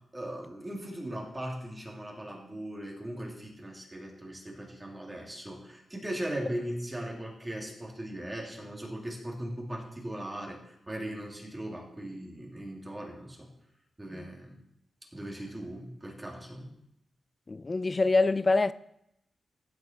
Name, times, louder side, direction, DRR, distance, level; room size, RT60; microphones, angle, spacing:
voice 1, 0.1-13.5 14.0-14.6 15.1-16.7, right 1 dB, 20° right, 2.9 m, -39 dB
voice 2, 17.5-18.7, left 3 dB, 35° left, 0.5 m, -25 dB
15.5 x 6.2 x 4.5 m
cardioid pair, 60°, 0 cm